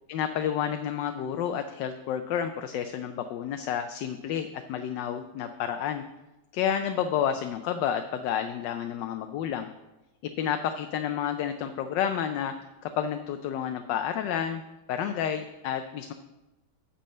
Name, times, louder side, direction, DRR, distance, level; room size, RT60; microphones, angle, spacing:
voice 1, 0.1-6.0 6.5-9.7 10.2-12.5 12.8-14.6 14.9-16.1, left 9 dB, 80° left, 7 dB, 1.2 m, -30 dB
10.5 x 4.4 x 7.4 m, 1.0 s
omnidirectional pair, 1.9 m